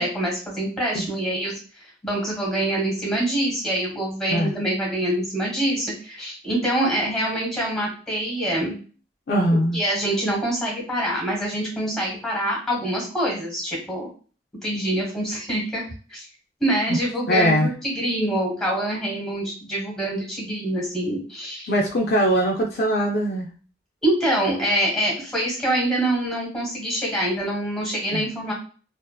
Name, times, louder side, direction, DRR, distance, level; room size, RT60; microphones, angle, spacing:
voice 1, 0.0-1.5 2.0-8.8 9.7-14.1 14.6-15.8 16.1-16.3 16.6-21.7 24.0-28.5, right 1 dB, 5° left, -2 dB, 1.1 m, -25 dB
voice 2, 9.3-9.8 17.3-17.7 21.7-23.5 28.1-28.3, equal, 55° left, -2 dB, 0.4 m, -21 dB
2.5 x 2.5 x 2.2 m, 0.38 s
head